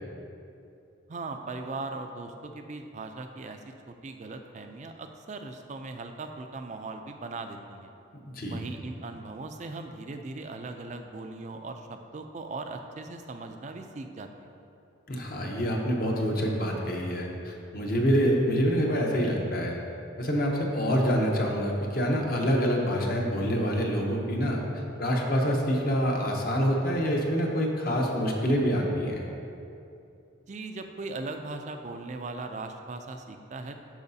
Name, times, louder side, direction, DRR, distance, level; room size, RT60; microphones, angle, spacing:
voice 1, 1.1-7.9 8.5-14.5 30.5-33.8, right 3 dB, 35° right, 6 dB, 0.4 m, -39 dB
voice 2, 8.3-8.6 15.1-19.8 20.2-29.2, equal, 45° left, 0 dB, 0.8 m, -26 dB
12.0 x 4.8 x 2.7 m, 2.6 s
head